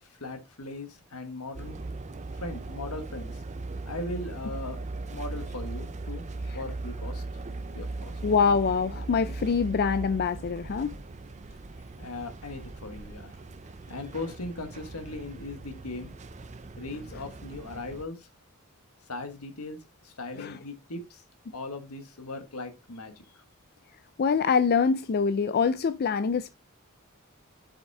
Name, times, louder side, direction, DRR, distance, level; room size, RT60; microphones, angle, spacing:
voice 1, 0.0-1.8 2.4-3.4 3.8-4.8 5.1-6.2 6.5-7.2 7.7-8.1 12.0-13.4 13.9-16.1 16.8-18.3 19.1-21.2 21.5-23.4, left 2 dB, 80° left, 1.5 m, -39 dB
sound 1, 1.5-18.0, right 3 dB, 30° right, 0.5 m, -39 dB
voice 2, 8.2-10.9 20.4-20.6 24.2-26.5, left 5 dB, 45° left, 0.4 m, -25 dB
7.3 x 5.4 x 3.4 m
head